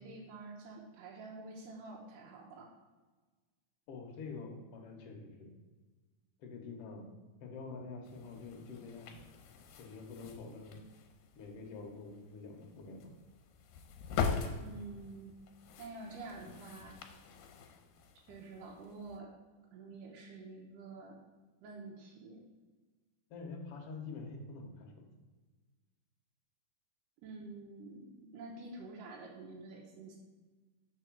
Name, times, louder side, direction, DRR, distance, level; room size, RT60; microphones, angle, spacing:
voice 1, 0.0-2.7 14.6-15.3 15.8-17.0 18.3-19.3 19.7-21.2 21.6-22.5 27.2-30.2, right 3 dB, 75° right, -3 dB, 2.4 m, -48 dB
voice 2, 3.9-5.5 6.4-7.1 7.4-9.1 9.7-10.8 11.3-13.1 23.3-25.0, left 4 dB, 70° left, 1 dB, 1.4 m, -46 dB
sound 1, 8.0-19.2, left 6 dB, 90° left, 2.3 m, -43 dB
4.7 x 4.4 x 6.0 m, 1.3 s
omnidirectional pair, 3.9 m